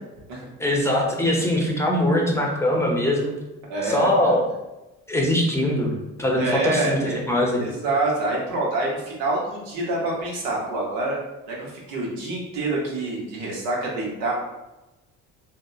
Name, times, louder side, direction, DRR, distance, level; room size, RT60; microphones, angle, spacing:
voice 1, 0.6-3.3 3.8-4.4 5.1-5.9 6.2-7.0 7.3-7.6, left 1 dB, 10° left, -1 dB, 0.6 m, -21 dB
voice 2, 3.7-4.4 6.4-7.1 7.5-11.2 11.5-14.3, right 2 dB, 85° right, -4 dB, 0.8 m, -26 dB
2.8 x 2.1 x 2.3 m, 1.0 s
supercardioid pair, 70°, 30 cm